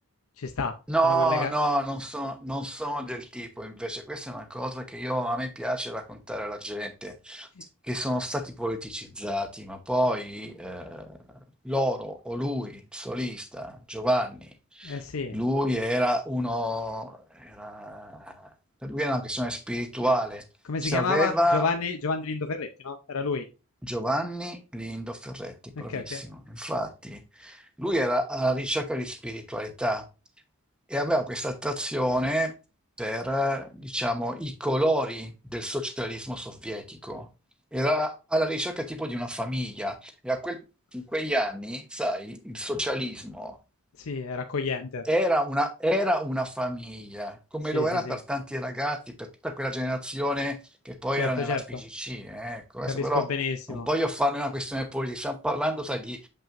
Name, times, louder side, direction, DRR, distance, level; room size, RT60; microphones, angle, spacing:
voice 1, 0.4-0.8 1.0-1.5 14.8-15.4 20.7-23.5 25.8-26.2 44.0-45.1 47.7-48.2 51.2-51.8 52.9-53.9, left 4 dB, 80° left, 0.6 m, -30 dB
voice 2, 0.9-7.5 7.8-11.2 11.6-15.0 15.3-18.5 18.8-20.4 20.8-21.7 23.8-30.1 30.9-32.5 33.0-37.3 37.7-40.6 40.9-43.6 45.0-50.6 50.8-53.3 53.7-56.3, equal, 5° right, 0.8 m, -29 dB
7.4 x 5.5 x 2.5 m
head